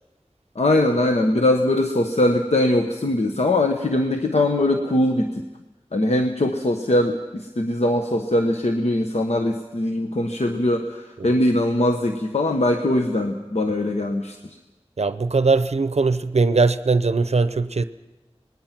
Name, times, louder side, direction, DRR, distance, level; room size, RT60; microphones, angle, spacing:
voice 1, 0.5-5.4 5.9-14.4, left 1 dB, 85° left, 4 dB, 1.2 m, -21 dB
voice 2, 15.0-17.8, right 4 dB, 80° right, 12 dB, 0.6 m, -20 dB
26.0 x 20.0 x 6.0 m, 1.1 s
wide cardioid pair, 45°, 11 cm